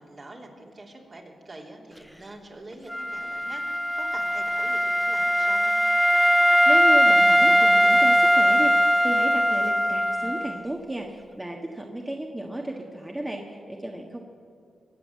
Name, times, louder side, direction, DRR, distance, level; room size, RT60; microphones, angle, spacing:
voice 1, 0.0-5.8, right 2 dB, 45° right, -1 dB, 3.3 m, -45 dB
Wind instrument woodwind instrument, 2.9-10.7, equal, ahead, 0.4 m, -20 dB
voice 2, 6.7-8.7 9.0-14.2, right 1 dB, 20° right, 0 dB, 1.6 m, -33 dB
22.0 x 7.7 x 7.7 m, 2.3 s
cardioid pair, 55°, 0 cm